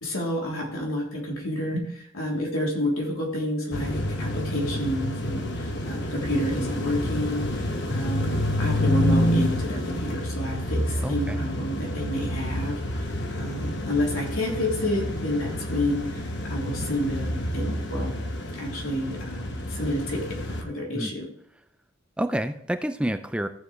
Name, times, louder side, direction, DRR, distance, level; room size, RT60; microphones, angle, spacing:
voice 1, 0.0-18.1 18.6-20.3 20.6-21.2, equal, 90° left, -2 dB, 3.3 m, -29 dB
sound 1, 3.7-20.6, left 1 dB, 55° left, 1.2 m, -28 dB
voice 2, 11.0-11.4 21.0-21.1 22.2-23.5, right 1 dB, 5° right, 9 dB, 0.4 m, -28 dB
14.5 x 7.4 x 3.2 m, 0.69 s
head